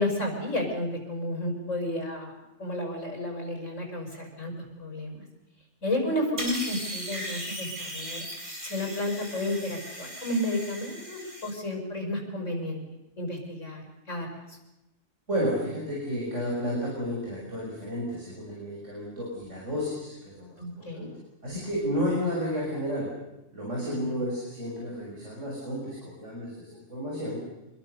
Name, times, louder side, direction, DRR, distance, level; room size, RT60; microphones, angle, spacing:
voice 1, 0.0-2.3 2.6-4.5 4.8-5.3 5.8-8.3 8.6-12.8 13.2-14.6 20.6-21.1 24.1-24.2, left 1 dB, 85° left, 3 dB, 6.1 m, -32 dB
sound 1, 6.4-11.5, equal, 40° right, 6.1 m, -38 dB
voice 2, 15.3-21.1 21.4-23.1 23.5-27.4, equal, 75° right, -4 dB, 6.7 m, -32 dB
26.0 x 22.0 x 6.7 m, 0.96 s
omnidirectional pair, 1.3 m